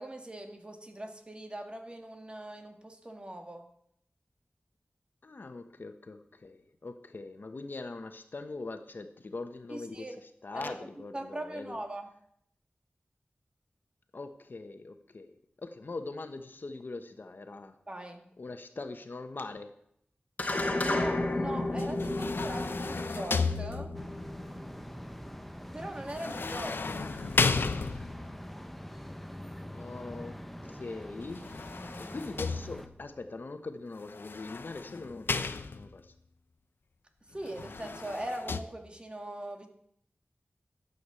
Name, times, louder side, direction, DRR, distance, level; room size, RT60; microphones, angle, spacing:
voice 1, 0.0-3.7 9.7-10.2 10.5-12.1 17.9-18.3 20.8-23.9 25.7-27.8 37.2-39.7, right 1 dB, 30° right, 4 dB, 2.0 m, -41 dB
voice 2, 5.2-11.8 14.1-17.8 18.4-19.7 29.7-31.5 32.0-36.1, left 3 dB, 65° left, 8 dB, 1.3 m, -42 dB
sound 1, 20.4-25.0, left 2 dB, 45° left, 1.6 m, -32 dB
sound 2, 21.8-24.2 26.1-28.4 31.2-33.1 34.1-36.1 37.4-38.6, left 4 dB, 85° left, 0.7 m, -34 dB
sound 3, 23.9-32.9, equal, 5° left, 0.9 m, -44 dB
13.0 x 8.4 x 6.9 m, 0.71 s
wide cardioid pair, 80°, 4 cm